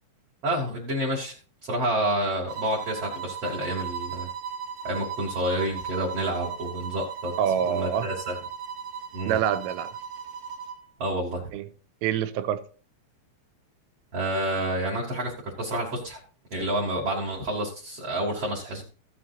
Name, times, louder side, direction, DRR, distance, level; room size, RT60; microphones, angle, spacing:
voice 1, 0.4-1.3 1.6-4.3 4.8-7.3 7.7-8.3 9.1-9.4 11.0-11.4 14.1-16.2 16.5-18.8, right 1 dB, 40° right, 2.6 m, -29 dB
sound 1, 2.5-10.9, right 7 dB, 70° right, 3.5 m, -36 dB
voice 2, 7.4-8.1 9.3-9.9 11.5-11.7 12.0-12.6, right 9 dB, 85° right, 3.3 m, -26 dB
15.5 x 8.5 x 2.7 m
omnidirectional pair, 5.9 m